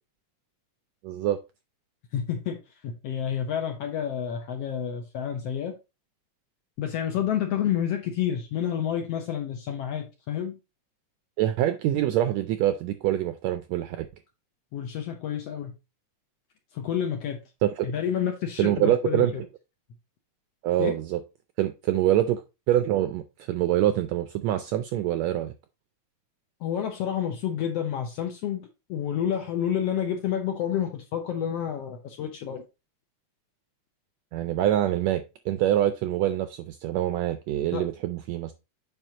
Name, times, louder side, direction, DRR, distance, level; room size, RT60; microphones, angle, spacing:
voice 1, 1.0-1.4 11.4-14.1 17.6-17.8 18.6-19.3 20.6-21.2 21.6-22.4 22.7-25.5 34.3-38.5, right 12 dB, 85° right, 1.5 m, -25 dB
voice 2, 2.1-2.6 2.8-5.7 6.8-10.6 14.7-15.7 16.7-17.4 17.8-19.3 20.8-20.9 26.6-32.6 37.7-37.8, left 9 dB, 70° left, 1.6 m, -29 dB
7.7 x 5.3 x 2.8 m
omnidirectional pair, 3.6 m